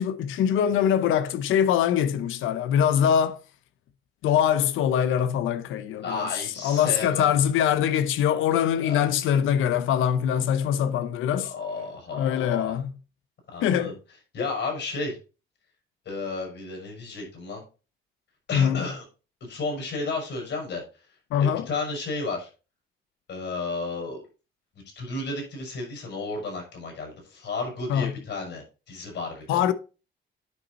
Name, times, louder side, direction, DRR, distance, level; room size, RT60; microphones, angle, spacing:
voice 1, 0.0-3.4 4.2-6.3 6.6-11.5 12.1-12.9 13.6-13.9 18.5-18.8 21.3-21.7 27.9-28.1 29.5-29.7, left 9 dB, 85° left, 0.8 m, -23 dB
voice 2, 6.0-7.4 8.8-9.4 11.5-12.7 13.5-13.9 14.3-15.2 16.1-17.6 18.5-19.0 19.4-20.8 21.4-22.5 23.3-24.2 25.0-29.6, left 3 dB, 65° left, 5.7 m, -32 dB
9.4 x 5.3 x 4.1 m
cardioid pair, 90°, 20 cm